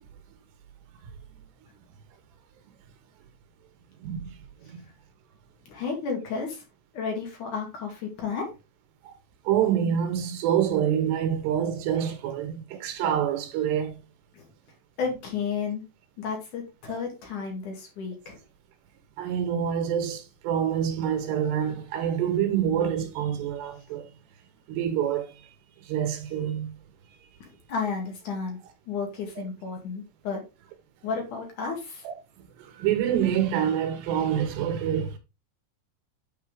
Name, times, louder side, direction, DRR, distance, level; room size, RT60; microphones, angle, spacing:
voice 1, 5.7-6.6 6.9-8.5 14.3-14.5 15.0-15.8 16.2-18.4 27.4-28.6 28.9-30.4 31.0-32.0, left 5 dB, 55° left, 3.2 m, -32 dB
voice 2, 9.5-13.9 19.2-24.1 24.7-25.3 25.9-26.7 32.0-32.1 32.6-35.2, right 9 dB, 90° right, 3.2 m, -26 dB
9.4 x 4.7 x 3.6 m
omnidirectional pair, 4.8 m